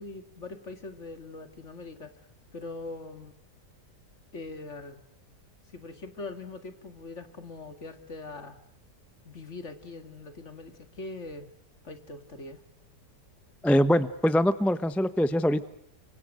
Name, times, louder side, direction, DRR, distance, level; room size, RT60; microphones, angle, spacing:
voice 1, 0.0-2.1 2.5-3.3 4.3-5.0 5.7-8.6 9.2-11.5 11.8-12.6, left 3 dB, 45° left, 9 dB, 2.4 m, -42 dB
voice 2, 13.6-15.6, equal, ahead, 14 dB, 0.5 m, -23 dB
29.5 x 25.5 x 6.5 m, 0.69 s
omnidirectional pair, 1.8 m